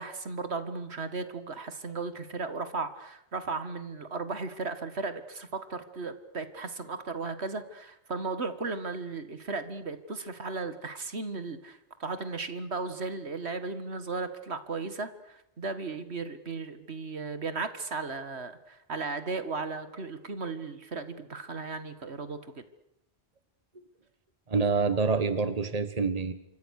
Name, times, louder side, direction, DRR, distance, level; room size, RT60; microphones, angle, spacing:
voice 1, 0.0-22.6, right 4 dB, 75° right, 11 dB, 2.1 m, -36 dB
voice 2, 24.5-26.3, right 4 dB, 35° right, 12 dB, 1.6 m, -26 dB
28.0 x 25.5 x 6.6 m, 0.82 s
omnidirectional pair, 1.1 m